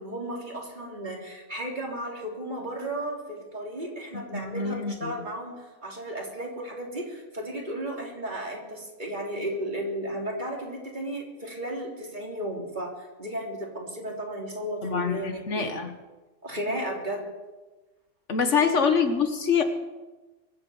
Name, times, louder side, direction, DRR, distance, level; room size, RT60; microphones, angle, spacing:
voice 1, 0.0-15.8 16.4-17.3 18.5-18.7, right 1 dB, 40° right, -1 dB, 3.5 m, -34 dB
voice 2, 4.1-5.1 14.8-15.9 18.3-19.6, left 6 dB, 70° left, 7 dB, 1.6 m, -25 dB
23.5 x 8.4 x 7.1 m, 1.2 s
omnidirectional pair, 1.3 m